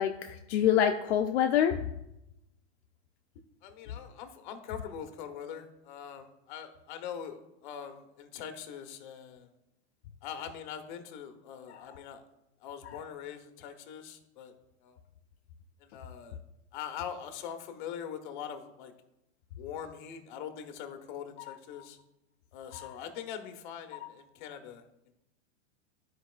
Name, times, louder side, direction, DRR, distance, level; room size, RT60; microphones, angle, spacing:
voice 1, 0.0-1.8 11.7-12.0 12.8-13.0 21.4-21.8 22.7-22.9 23.9-24.1, left 9 dB, 65° left, 4 dB, 0.6 m, -28 dB
voice 2, 3.6-9.5 10.2-12.2 12.6-14.5 14.8-15.0 15.8-16.4 16.7-18.9 19.6-22.0 22.5-24.8, left 8 dB, 45° left, 6 dB, 0.9 m, -42 dB
12.5 x 4.8 x 2.4 m, 0.88 s
supercardioid pair, 170°, 35 cm